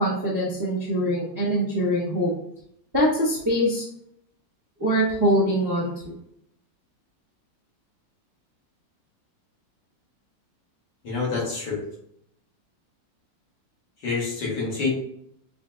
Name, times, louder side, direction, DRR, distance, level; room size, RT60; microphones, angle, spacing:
voice 1, 0.0-2.3 2.9-3.8 4.8-6.1, equal, 25° right, -8 dB, 0.5 m, -23 dB
voice 2, 11.0-11.8 14.0-14.9, left 4 dB, 70° left, -4 dB, 2.0 m, -27 dB
5.4 x 2.8 x 2.2 m, 0.71 s
omnidirectional pair, 2.0 m